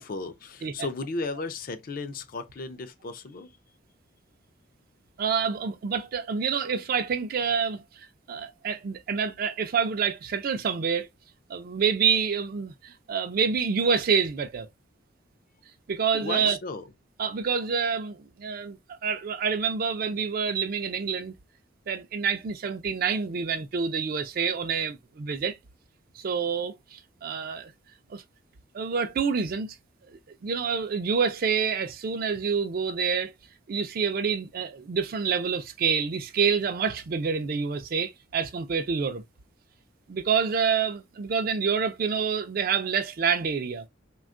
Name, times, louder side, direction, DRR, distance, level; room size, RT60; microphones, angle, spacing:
voice 1, 0.0-3.5 16.1-16.8, left 3 dB, 45° left, 0.4 m, -35 dB
voice 2, 5.2-11.1 11.5-14.7 15.9-16.6 17.2-21.3 21.9-25.6 26.2-27.7 28.1-28.2 28.7-29.8 30.4-33.3 33.7-39.2 40.1-43.9, right 6 dB, 50° right, 0.4 m, -27 dB
3.4 x 2.3 x 2.4 m
head